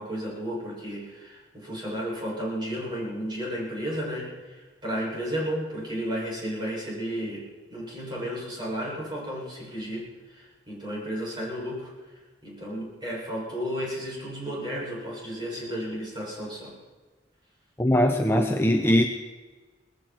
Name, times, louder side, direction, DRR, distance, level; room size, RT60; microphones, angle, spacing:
voice 1, 0.0-7.5 7.7-11.9 12.4-16.7, equal, 25° right, -5 dB, 7.2 m, -33 dB
voice 2, 17.8-19.1, left 1 dB, 15° left, 3 dB, 0.8 m, -21 dB
19.5 x 15.5 x 4.6 m, 1.3 s
head